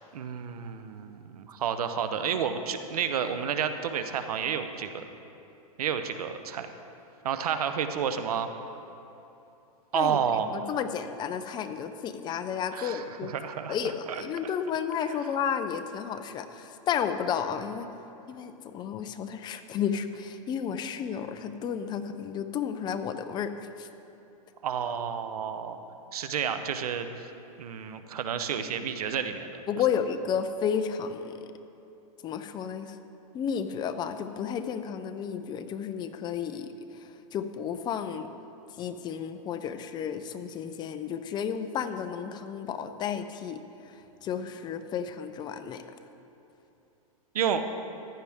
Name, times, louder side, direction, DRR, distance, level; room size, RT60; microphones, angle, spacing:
voice 1, 0.1-5.0 5.8-6.7 7.2-8.5 9.9-10.5 12.7-13.8 14.1-14.2 24.6-25.8 26.1-27.3 27.6-29.6 47.3-47.7, right 7 dB, 85° right, 9 dB, 0.9 m, -30 dB
voice 2, 9.9-13.3 13.7-17.9 18.3-23.9 29.7-31.4 32.2-33.0 33.3-36.7 36.9-38.3 38.8-45.8, left 7 dB, 25° left, 9 dB, 0.5 m, -32 dB
15.0 x 11.0 x 3.6 m, 3.0 s
hypercardioid pair, 140°, 19 cm